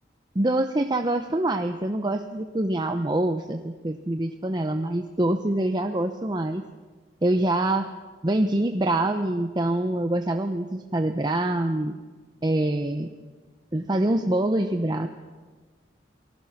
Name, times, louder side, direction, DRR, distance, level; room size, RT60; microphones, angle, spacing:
voice 1, 0.3-6.6 7.2-7.9 8.2-12.0 12.4-13.1 13.7-15.1, right 1 dB, 25° right, 6 dB, 0.8 m, -25 dB
28.0 x 18.5 x 5.9 m, 1.4 s
head